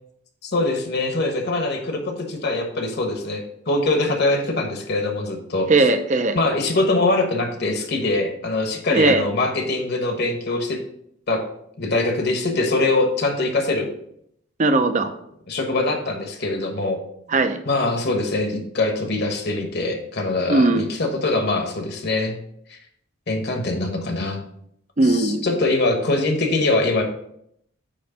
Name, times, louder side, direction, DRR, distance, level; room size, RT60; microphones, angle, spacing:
voice 1, 0.4-5.7 6.3-10.8 11.3-11.4 11.8-13.9 15.5-17.0 17.6-22.4 22.7-22.8 23.3-24.4 25.0-27.0, left 2 dB, 50° left, 4 dB, 1.2 m, -23 dB
voice 2, 5.7-6.4 8.9-9.2 14.6-15.1 17.3-17.6 20.5-20.9 25.0-25.5, right 2 dB, 35° right, 8 dB, 0.6 m, -18 dB
8.7 x 3.2 x 5.8 m, 0.73 s
head